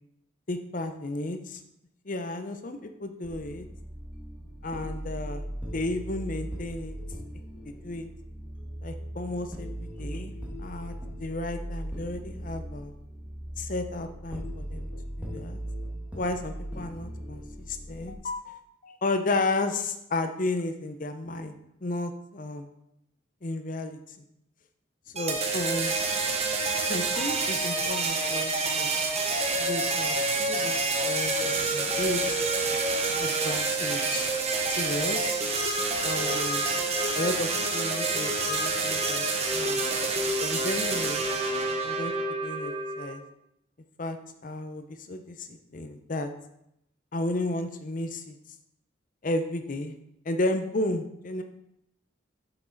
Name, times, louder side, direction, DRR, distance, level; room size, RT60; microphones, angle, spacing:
voice 1, 0.5-1.6 2.1-3.7 4.6-7.0 7.6-8.1 8.8-10.3 10.6-10.9 11.2-12.9 13.6-14.9 15.2-15.6 16.1-21.5 21.8-22.7 23.4-24.0 25.1-25.9 26.9-28.9 29.5-30.8 31.0-32.5 33.2-34.3 34.8-35.4 36.0-36.7 37.1-39.3 39.6-39.8 40.4-41.3 41.8-42.1 42.4-43.2 44.0-44.2 44.4-46.3 47.1-48.4 49.2-49.9 50.2-51.4, left 2 dB, 40° left, 8 dB, 0.6 m, -33 dB
sound 1, 3.2-18.1, equal, 5° right, 1.6 m, -38 dB
sound 2, 25.2-43.1, right 3 dB, 35° right, 0.9 m, -28 dB
7.5 x 5.9 x 4.0 m, 0.81 s
head